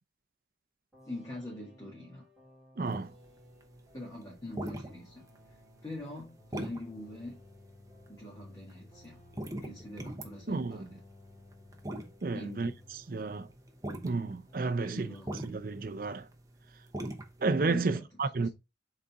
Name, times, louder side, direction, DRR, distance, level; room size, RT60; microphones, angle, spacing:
sound 1, 0.9-14.7 14.9-16.1, left 1 dB, 5° right, 2.0 m, -58 dB
voice 1, 1.0-2.2 3.9-5.6 5.8-7.4 8.1-9.2 9.6-11.0 12.3-12.8 14.8-15.4 17.6-18.0 18.4-18.5, left 1 dB, 20° left, 2.0 m, -44 dB
voice 2, 2.8-3.1 10.5-10.9 12.2-12.7 13.1-13.5 14.0-15.1 15.4-16.3 17.4-18.5, right 3 dB, 50° right, 0.5 m, -31 dB
sound 2, 2.9-17.7, right 1 dB, 20° right, 0.9 m, -43 dB
6.7 x 4.1 x 3.5 m
head